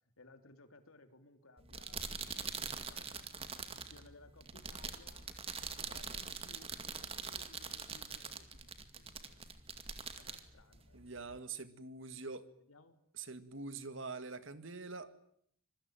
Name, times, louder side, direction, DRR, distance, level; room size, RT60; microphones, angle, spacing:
voice 1, 0.2-3.3 3.7-5.2 5.8-9.4 10.2-11.1 12.7-13.0, left 2 dB, 90° left, 8 dB, 3.2 m, -61 dB
sound 1, 1.6-11.4, right 5 dB, 25° right, 2.2 m, -44 dB
voice 2, 10.9-12.5 13.2-15.1, right 4 dB, 65° right, 12 dB, 2.0 m, -45 dB
26.5 x 22.5 x 9.2 m, 0.70 s
head